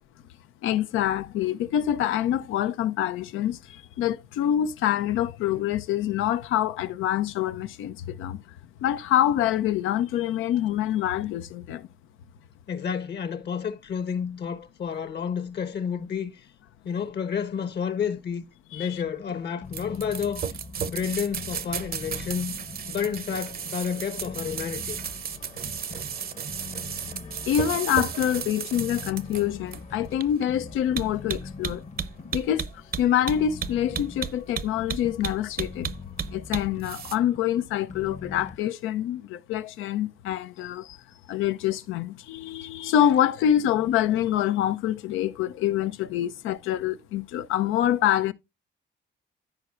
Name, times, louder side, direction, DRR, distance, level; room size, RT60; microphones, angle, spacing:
voice 1, 0.6-8.5 8.8-11.9 18.7-19.0 27.5-31.8 32.3-32.7 33.0-35.9 36.3-41.0 41.3-48.3, left 11 dB, 90° left, 0.7 m, -26 dB
voice 2, 12.7-16.3 16.8-18.4 18.7-20.6 20.9-22.6 22.8-25.0 32.2-32.3, left 7 dB, 60° left, 1.3 m, -30 dB
sound 1, 19.1-38.6, left 4 dB, 35° left, 0.9 m, -43 dB
sound 2, 19.7-37.2, right 7 dB, 50° right, 0.7 m, -33 dB
14.5 x 5.0 x 2.5 m
cardioid pair, 90°, 20 cm